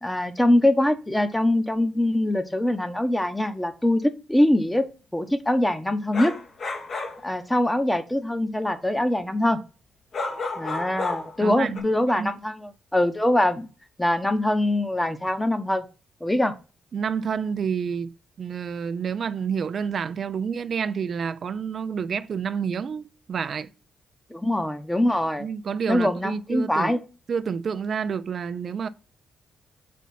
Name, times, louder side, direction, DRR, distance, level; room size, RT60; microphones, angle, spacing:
voice 1, 0.0-4.9 5.1-6.3 7.2-9.6 10.6-13.7 14.0-15.8 16.2-16.5 24.3-25.5 25.9-27.0, left 1 dB, 10° left, 0.9 m, -23 dB
sound 1, 6.1-7.2 10.1-11.4 11.7-11.8, left 3 dB, 55° left, 1.2 m, -31 dB
voice 2, 11.4-11.8 12.1-12.3 16.9-23.7 25.4-27.0 27.3-28.9, right 6 dB, 55° right, 0.4 m, -29 dB
4.2 x 4.1 x 5.6 m
hypercardioid pair, 45°, 0 cm